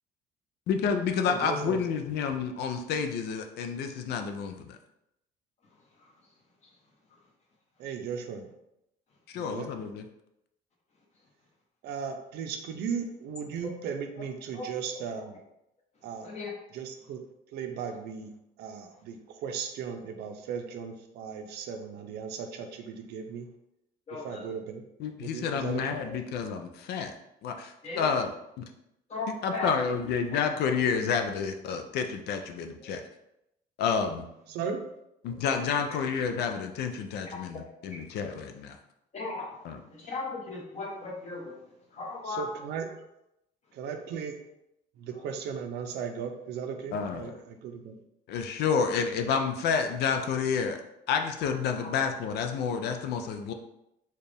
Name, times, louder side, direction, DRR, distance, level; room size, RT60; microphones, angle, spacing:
voice 1, 0.7-4.8 9.3-10.0 25.0-27.1 27.4-28.6 29.4-33.0 33.8-34.3 35.2-38.8 39.6-39.8 46.9-47.4 48.3-50.8 51.1-53.5, left 6 dB, 75° left, 6 dB, 0.5 m, -29 dB
voice 2, 1.3-1.8 7.8-8.4 9.4-9.7 11.8-15.3 16.0-16.3 16.7-17.2 17.5-18.3 18.6-19.2 19.4-23.4 24.2-24.8 25.2-26.0 34.5-34.8 42.3-42.9 43.8-44.3 45.0-47.3 47.6-47.9, right 6 dB, 75° right, 5 dB, 0.6 m, -36 dB
voice 3, 24.1-24.5 27.8-28.1 29.1-29.7 35.9-36.0 37.3-37.4 37.9-38.0 39.1-39.5 40.0-41.5 41.9-42.5 51.8-51.9, left 3 dB, 40° left, -1 dB, 1.1 m, -36 dB
4.3 x 2.4 x 3.4 m, 0.82 s
cardioid pair, 110°, 17 cm